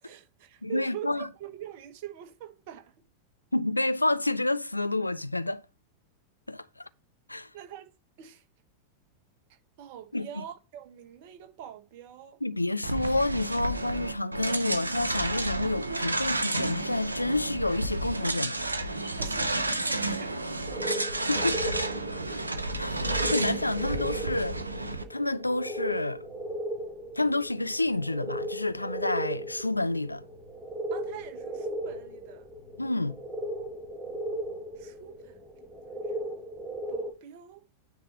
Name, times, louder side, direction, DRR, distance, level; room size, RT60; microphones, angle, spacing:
voice 1, 0.0-2.9 7.5-7.9 8.2-8.4 9.5-12.4 19.2-20.5 22.8-23.0 30.9-32.5 34.8-35.4 35.9-36.4 36.9-37.7, right 10 dB, 50° right, 1.2 m, -44 dB
voice 2, 0.6-1.3 3.5-5.6 6.5-6.9 7.3-7.5 10.1-10.3 12.4-18.6 21.3-21.9 22.8-26.2 27.2-30.2 32.8-33.2, left 2 dB, 85° left, 0.4 m, -29 dB
sound 1, 12.8-25.0, right 2 dB, 80° right, 0.8 m, -31 dB
sound 2, 20.7-37.1, right 1 dB, 10° right, 1.9 m, -37 dB
9.4 x 3.9 x 4.2 m
figure-of-eight pair, 90°, 0 cm